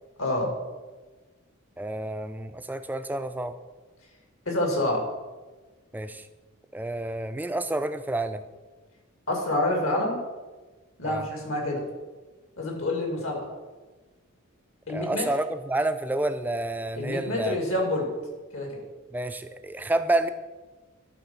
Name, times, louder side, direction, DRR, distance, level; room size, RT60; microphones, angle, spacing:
voice 1, 0.2-0.5 4.5-5.0 9.3-10.2 11.0-11.8 12.6-13.5 14.9-15.3 16.9-18.1 18.5-18.8, left 1 dB, 75° left, 1 dB, 2.2 m, -27 dB
voice 2, 1.8-3.5 5.9-6.2 6.7-8.4 11.1-11.2 14.9-17.6 19.1-20.3, right 2 dB, 10° right, 10 dB, 0.3 m, -29 dB
11.0 x 4.3 x 5.6 m, 1.3 s
head